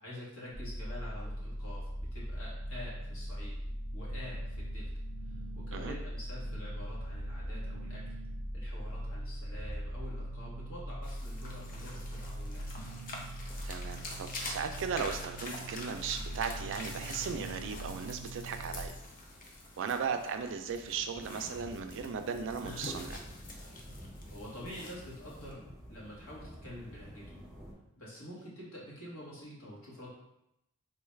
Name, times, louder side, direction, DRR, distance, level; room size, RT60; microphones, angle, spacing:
voice 1, 0.0-3.5 3.9-4.9 5.2-8.0 8.5-12.7 24.3-25.6 25.9-27.4 28.0-30.1, left 1 dB, 80° left, -6 dB, 1.4 m, -47 dB
sound 1, 0.5-18.9, equal, 65° left, 0.9 m, -40 dB
sound 2, 11.0-25.5, left 2 dB, 40° left, 0.5 m, -46 dB
sound 3, 11.3-27.7, equal, ahead, 0.6 m, -53 dB
voice 2, 13.6-19.0 19.8-23.2, right 6 dB, 60° right, 7 dB, 0.3 m, -37 dB
3.8 x 2.3 x 3.2 m, 0.83 s
head